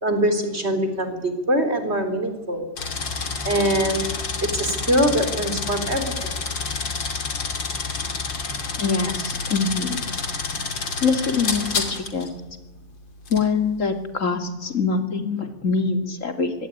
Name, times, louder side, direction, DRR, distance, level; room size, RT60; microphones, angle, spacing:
voice 1, 0.0-2.7 3.4-4.1 4.4-6.3, equal, 30° right, 7 dB, 4.0 m, -23 dB
sound 1, 2.8-12.3 13.3-13.4, left 4 dB, 60° left, 3.5 m, -29 dB
voice 2, 8.8-10.0 11.0-12.3 13.3-16.5, left 4 dB, 35° left, 6 dB, 3.0 m, -24 dB
25.0 x 23.0 x 9.7 m, 1.1 s
omnidirectional pair, 2.3 m